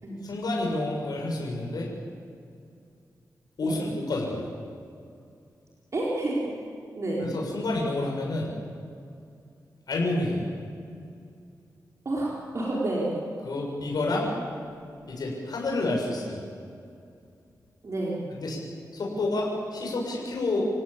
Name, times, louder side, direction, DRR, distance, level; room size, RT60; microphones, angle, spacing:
voice 1, 0.2-1.9 3.6-4.5 7.2-8.5 9.9-10.5 13.4-14.3 15.1-16.4 18.3-18.6 18.9-20.6, left 2 dB, 75° left, -2 dB, 6.6 m, -29 dB
voice 2, 5.9-6.5 6.9-7.2 12.0-13.1 17.8-18.2, right 2 dB, 45° right, -5 dB, 4.6 m, -29 dB
29.5 x 17.5 x 8.8 m, 2.4 s
wide cardioid pair, 120°, 7 cm